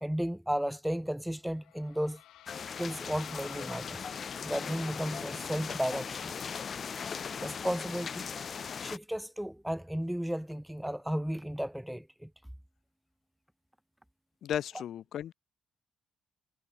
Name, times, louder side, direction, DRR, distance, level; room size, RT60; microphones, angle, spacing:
voice 1, 0.0-2.2 2.8-4.0 4.4-6.3 7.4-8.3 8.8-12.3, equal, ahead, 0.4 m, -34 dB
sound 1, 1.3-5.7, left 14 dB, 90° left, 7.5 m, -54 dB
sound 2, 2.5-9.0, left 6 dB, 35° left, 2.7 m, -39 dB
voice 2, 14.4-15.3, left 10 dB, 55° left, 0.9 m, -35 dB
cardioid pair, 170°, 0 cm